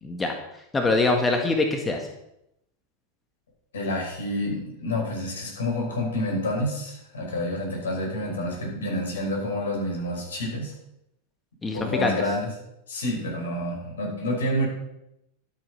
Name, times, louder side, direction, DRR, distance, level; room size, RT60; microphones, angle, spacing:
voice 1, 0.0-2.1 11.6-12.2, left 3 dB, 15° left, 3 dB, 1.7 m, -24 dB
voice 2, 3.7-10.7 11.7-12.5 12.9-14.7, left 1 dB, 70° left, -1 dB, 5.6 m, -28 dB
12.5 x 8.3 x 5.7 m, 0.83 s
figure-of-eight pair, 90°, 0 cm